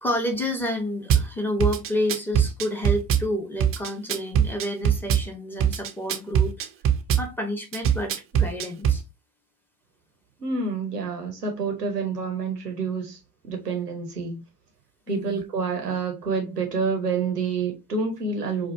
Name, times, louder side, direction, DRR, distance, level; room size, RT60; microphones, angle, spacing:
voice 1, 0.0-6.7 7.2-9.0 15.1-15.4, left 1 dB, 5° left, 0.8 m, -29 dB
Drum kit / Bass drum, 1.1-1.3 1.6-3.3 3.6-5.3 5.6-7.3 7.7-9.0, right 8 dB, 30° right, 0.5 m, -22 dB
voice 2, 10.4-13.2 13.4-14.4 15.1-18.7, right 4 dB, 90° right, 0.7 m, -28 dB
4.1 x 2.4 x 2.6 m
figure-of-eight pair, 65°, 47 cm